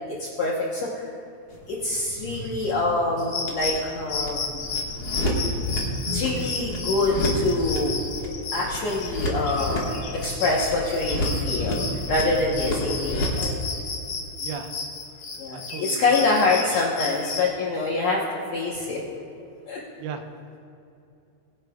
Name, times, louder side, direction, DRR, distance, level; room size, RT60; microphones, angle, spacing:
voice 1, 0.1-1.1 1.7-4.7 6.1-8.0 8.5-13.6 15.3-18.2 18.5-19.0 19.7-19.8, left 3 dB, 70° left, -4 dB, 1.6 m, -25 dB
sound 1, 1.5-13.5, left 1 dB, 85° left, 0.8 m, -31 dB
sound 2, 3.2-17.5, left 4 dB, 55° left, 2.4 m, -33 dB
Guitar, 6.0-8.6, equal, 60° right, 1.4 m, -39 dB
voice 2, 14.4-14.7 15.5-16.3 20.0-20.2, right 6 dB, 80° right, 6 dB, 2.5 m, -36 dB
21.0 x 9.8 x 2.3 m, 2.6 s
omnidirectional pair, 4.5 m